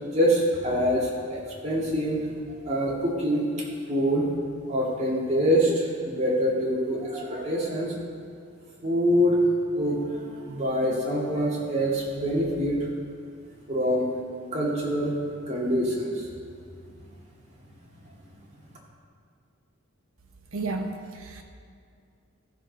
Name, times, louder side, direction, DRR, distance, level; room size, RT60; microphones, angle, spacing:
voice 1, 0.0-2.3 2.6-3.5 3.9-4.2 4.7-7.9 8.8-12.9 13.7-14.1 14.5-15.1 15.5-16.3, equal, 30° right, -5 dB, 2.3 m, -25 dB
voice 2, 20.5-21.4, right 3 dB, 70° right, 3 dB, 1.1 m, -32 dB
14.5 x 6.4 x 5.3 m, 2.3 s
head